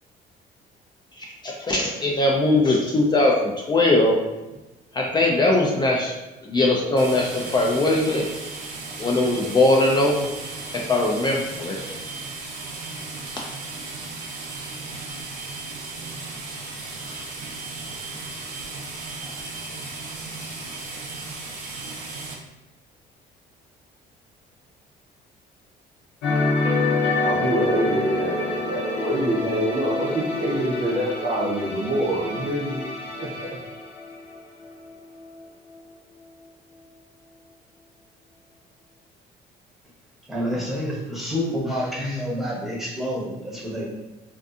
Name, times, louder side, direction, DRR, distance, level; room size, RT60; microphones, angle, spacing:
voice 1, 1.2-4.2 4.9-6.1 6.4-8.3 9.0-10.3 10.7-11.8, left 2 dB, 25° left, -1 dB, 0.3 m, -20 dB
sound 1, 7.0-22.3, right 3 dB, 85° right, 0.6 m, -35 dB
sound 2, 26.2-34.9 35.1-35.4, left 2 dB, 80° left, 0.5 m, -27 dB
voice 2, 27.2-32.9 33.2-33.6, right 1 dB, 45° right, -2 dB, 0.6 m, -26 dB
voice 3, 40.3-43.8, equal, ahead, -5 dB, 0.8 m, -28 dB
2.5 x 2.4 x 2.3 m, 1.1 s
cardioid pair, 110°, 17 cm